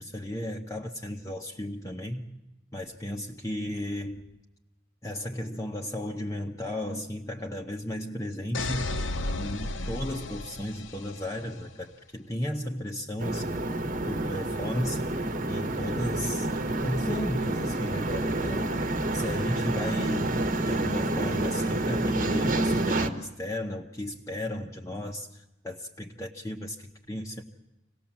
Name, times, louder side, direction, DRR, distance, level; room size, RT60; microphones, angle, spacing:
voice 1, 0.0-2.2 2.7-4.3 5.0-8.9 9.3-13.6 14.1-15.1 15.5-18.7 19.1-27.4, left 1 dB, 15° left, 1 dB, 1.0 m, -34 dB
sound 1, 8.5-11.4, left 2 dB, 65° left, 1.1 m, -33 dB
sound 2, 13.2-23.1, right 2 dB, 45° right, 1.4 m, -28 dB
25.5 x 18.5 x 7.3 m, 0.97 s
head